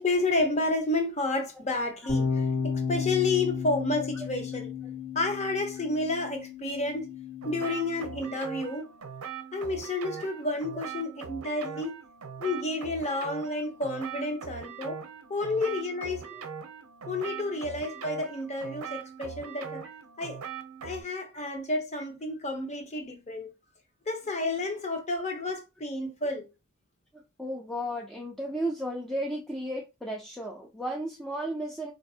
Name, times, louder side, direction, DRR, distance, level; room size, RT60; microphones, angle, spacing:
voice 1, 0.0-4.7 5.1-7.1 7.4-8.9 9.5-11.9 12.4-15.0 15.3-16.2 17.1-19.8 20.2-20.4 20.8-23.5 24.1-26.5, left 2 dB, 30° left, 0.7 m, -30 dB
voice 2, 2.0-2.4 3.9-4.1 10.2-10.3 16.3-16.4 17.5-17.6 27.1-31.9, right 1 dB, ahead, 0.4 m, -34 dB
sound 1, 2.1-8.3, left 5 dB, 50° left, 1.0 m, -33 dB
sound 2, 7.4-21.0, right 7 dB, 75° right, 0.6 m, -41 dB
4.0 x 2.5 x 2.7 m
head